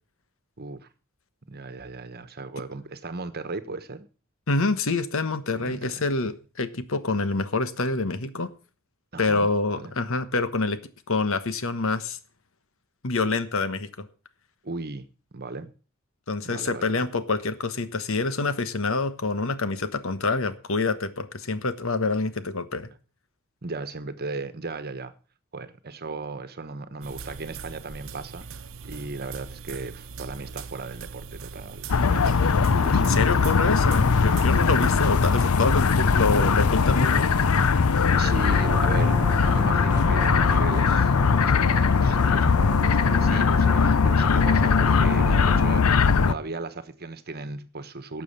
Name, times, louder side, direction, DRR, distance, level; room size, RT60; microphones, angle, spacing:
voice 1, 0.6-0.9 1.5-4.1 5.5-6.0 9.1-9.5 9.7-9.9 14.6-15.7 16.4-17.1 23.6-25.1 25.5-28.5 28.8-33.7 38.1-41.1 41.4-48.2, right 3 dB, 45° right, 1.3 m, -36 dB
voice 2, 4.5-8.5 9.2-10.8 11.1-12.2 13.0-14.1 16.3-22.9 32.9-37.3, left 3 dB, 65° left, 1.2 m, -26 dB
sound 1, 27.0-35.5, right 5 dB, 65° right, 0.9 m, -40 dB
sound 2, 31.9-46.3, left 5 dB, 90° left, 0.6 m, -20 dB
Brass instrument, 38.1-45.9, right 1 dB, 15° right, 1.0 m, -39 dB
12.0 x 7.5 x 7.3 m
head